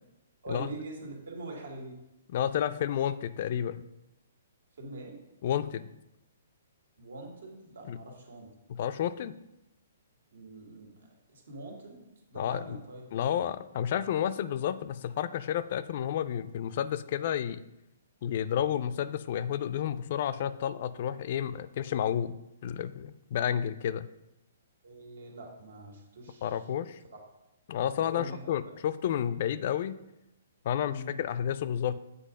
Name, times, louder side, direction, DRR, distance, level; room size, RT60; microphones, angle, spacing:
voice 1, 0.4-2.0 4.8-5.2 7.0-8.5 10.3-13.0 24.8-26.5 28.0-28.5 30.8-31.1, right 2 dB, 85° right, 1 dB, 1.9 m, -43 dB
voice 2, 2.3-3.8 5.4-5.9 7.9-8.0 8.7-9.4 12.4-12.8 13.1-17.6 18.2-24.1 26.4-27.0 27.7-30.0 30.6-32.0, left 9 dB, 45° left, 14 dB, 0.3 m, -31 dB
7.5 x 4.2 x 5.1 m, 0.90 s
hypercardioid pair, 160°, 0 cm